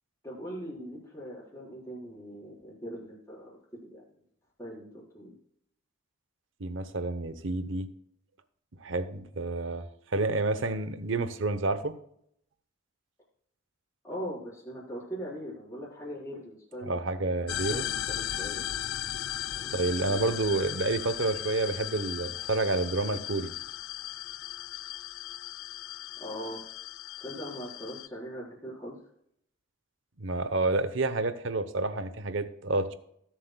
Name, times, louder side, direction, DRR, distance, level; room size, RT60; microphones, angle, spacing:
voice 1, 0.2-4.0 4.6-5.3 14.0-17.3 17.7-18.7 19.5-19.8 20.1-20.3 20.7-20.8 26.2-26.6 27.2-29.0, equal, 15° left, -6 dB, 4.4 m, -41 dB
voice 2, 6.6-7.9 8.8-11.9 16.8-17.9 19.7-23.5 30.2-32.9, right 2 dB, 65° right, 11 dB, 0.9 m, -29 dB
sound 1, 17.5-28.1, left 12 dB, 80° left, 0.4 m, -37 dB
20.0 x 7.6 x 2.3 m, 0.71 s
head